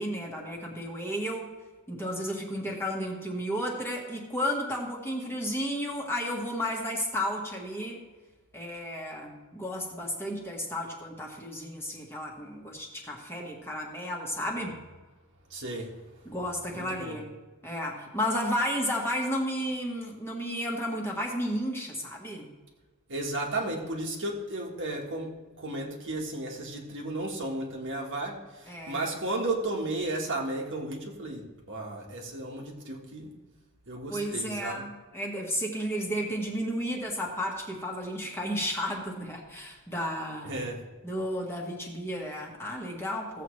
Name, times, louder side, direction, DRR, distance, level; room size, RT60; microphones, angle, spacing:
voice 1, 0.0-1.5 1.9-8.0 8.5-14.8 16.2-17.3 17.6-22.5 28.7-29.0 34.1-40.6 41.0-43.4, equal, 10° left, -1 dB, 1.5 m, -33 dB
voice 2, 15.5-15.9 16.4-16.5 16.7-17.2 23.1-33.3 33.9-34.8 40.4-40.8, right 2 dB, 55° right, -1 dB, 1.6 m, -34 dB
15.0 x 7.7 x 3.2 m, 1.3 s
head